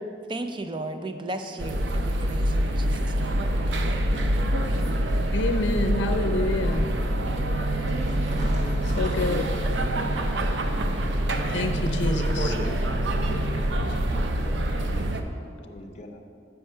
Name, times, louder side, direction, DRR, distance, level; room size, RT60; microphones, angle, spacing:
voice 1, 0.3-4.1, right 1 dB, 25° right, 7 dB, 0.4 m, -36 dB
sound 1, 1.6-15.2, right 1 dB, 80° right, 0.6 m, -25 dB
voice 2, 5.3-6.9 8.8-9.5 11.5-12.5, left 2 dB, 85° left, 6 dB, 0.5 m, -28 dB
sound 2, 7.9-10.0 11.3-12.1 13.7-14.5, equal, 40° right, 1.2 m, -39 dB
voice 3, 12.3-13.0 13.2-13.6 14.3-14.6 15.6-16.2, left 1 dB, 35° left, 1 dB, 0.6 m, -42 dB
7.8 x 5.6 x 5.4 m, 2.5 s
head